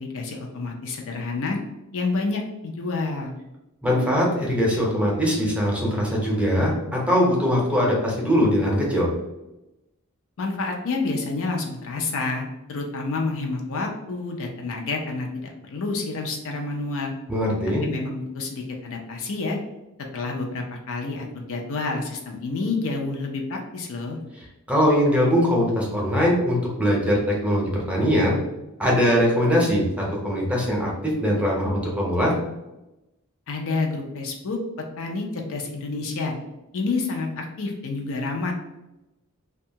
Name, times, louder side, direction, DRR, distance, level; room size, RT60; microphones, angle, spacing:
voice 1, 0.0-1.6 1.9-3.3 10.4-12.4 12.7-17.1 17.8-19.6 20.1-24.2 33.5-34.6 35.0-36.3 36.7-38.5, left 3 dB, 65° left, 1 dB, 0.5 m, -29 dB
voice 2, 3.8-9.1 17.3-17.8 24.7-28.4 28.8-32.3, equal, 5° right, -4 dB, 0.7 m, -21 dB
2.6 x 2.2 x 2.7 m, 0.96 s
head